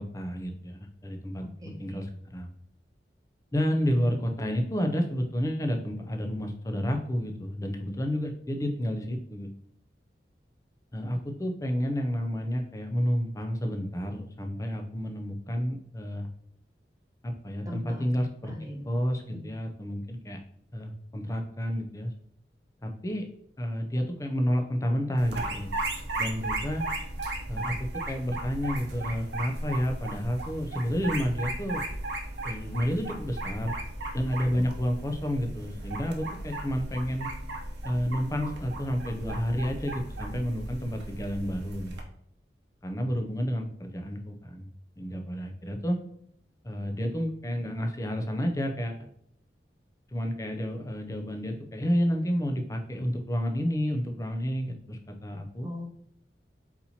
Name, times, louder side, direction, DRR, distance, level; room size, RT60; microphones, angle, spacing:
voice 1, 0.0-2.5 3.5-9.5 10.9-16.3 17.2-18.5 18.9-20.4 20.7-22.1 22.8-23.3 23.6-25.8 26.2-26.9 27.5-31.9 32.4-33.7 34.1-37.3 37.8-41.9 42.8-44.7 45.0-46.0 46.6-49.1 50.1-55.7, equal, 20° left, 4 dB, 0.4 m, -30 dB
voice 2, 1.6-2.0 17.7-18.1 18.4-18.9 19.3-19.4 55.6-55.8, left 1 dB, 20° right, -1 dB, 0.9 m, -39 dB
sound 1, 25.2-42.0, right 2 dB, 85° right, 0.7 m, -36 dB
4.2 x 4.2 x 2.8 m, 0.69 s
head